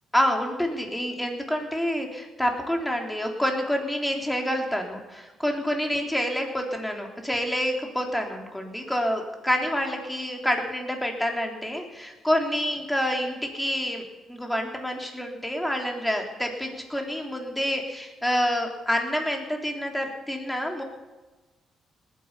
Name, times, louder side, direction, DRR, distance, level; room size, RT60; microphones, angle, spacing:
voice 1, 0.1-14.0 14.3-20.8, equal, 5° left, 2 dB, 3.5 m, -27 dB
19.5 x 10.0 x 7.0 m, 1.2 s
cardioid pair, 90°, 0 cm